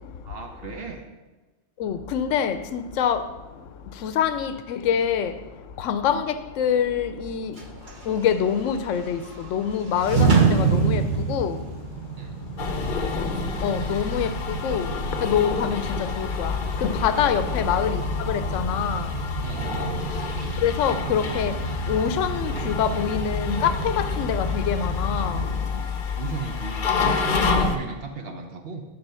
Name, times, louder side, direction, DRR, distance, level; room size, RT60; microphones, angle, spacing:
voice 1, 0.2-1.0 12.2-12.4 17.3-17.4 19.4-20.1 26.1-28.8, right 4 dB, 60° right, 0.9 m, -35 dB
voice 2, 1.8-3.2 4.0-5.3 5.8-6.2 6.6-7.5 8.1-9.2 9.5-11.6 13.6-14.9 15.2-15.8 16.2-16.5 17.0-18.0 18.3-19.1 20.6-21.5 21.9-25.4, left 8 dB, 85° left, 0.9 m, -25 dB
sound 1, 7.5-25.4, right 4 dB, 40° right, 1.3 m, -29 dB
sound 2, 12.6-27.8, left 5 dB, 50° left, 0.7 m, -29 dB
9.7 x 4.2 x 5.5 m
omnidirectional pair, 1.3 m